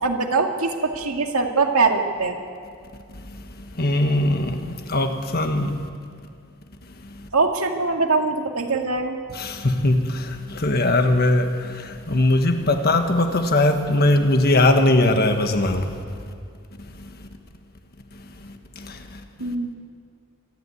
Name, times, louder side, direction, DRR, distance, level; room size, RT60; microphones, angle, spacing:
voice 1, 0.0-2.4 7.3-9.2 19.4-19.7, right 3 dB, 85° right, 3 dB, 2.1 m, -22 dB
voice 2, 3.7-5.8 7.2-7.3 9.3-16.0 17.0-17.1 18.4-19.2, left 2 dB, 45° left, 6 dB, 1.5 m, -20 dB
26.0 x 11.5 x 9.5 m, 2.3 s
head